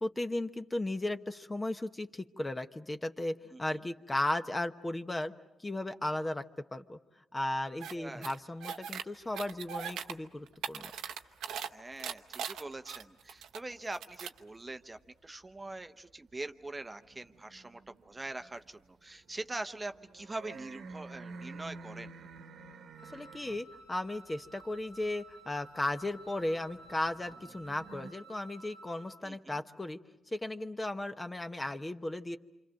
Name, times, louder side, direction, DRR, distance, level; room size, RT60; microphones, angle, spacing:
voice 1, 0.0-5.3 5.6-6.4 6.7-7.0 7.3-10.9 23.1-30.0 30.3-32.4, left 1 dB, 20° left, 8 dB, 1.0 m, -35 dB
sound 1, 7.8-7.9 8.2-9.0 9.3-10.1 10.5-11.7 12.0-13.6 13.9-14.4, right 8 dB, 90° right, 0.9 m, -39 dB
voice 2, 7.9-8.3 11.7-22.1 29.2-29.5, right 2 dB, 20° right, 8 dB, 0.8 m, -43 dB
sound 2, 9.2-12.1 12.4-15.0 15.4-28.1, right 3 dB, 75° right, 1.3 m, -52 dB
Wind instrument woodwind instrument, 23.0-29.2, right 2 dB, 90° left, 3.1 m, -54 dB
27.5 x 26.0 x 6.4 m, 1.0 s
cardioid pair, 75°, 0 cm